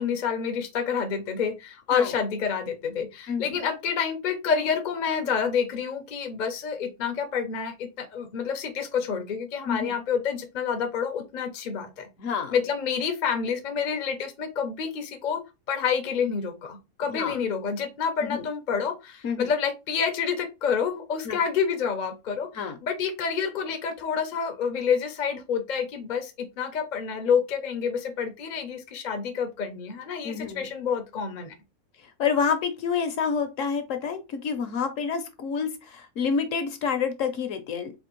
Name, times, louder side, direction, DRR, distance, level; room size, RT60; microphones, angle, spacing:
voice 1, 0.0-12.1 12.5-15.4 15.7-31.5, left 6 dB, 45° left, 6 dB, 0.6 m, -28 dB
voice 2, 3.3-3.6 9.6-10.0 12.2-12.6 17.1-17.3 18.2-18.5 19.2-19.5 21.2-21.4 22.5-22.8 30.2-30.7 32.2-37.9, left 6 dB, 65° left, 8 dB, 1.0 m, -28 dB
4.3 x 2.6 x 3.0 m, 0.25 s
omnidirectional pair, 1.5 m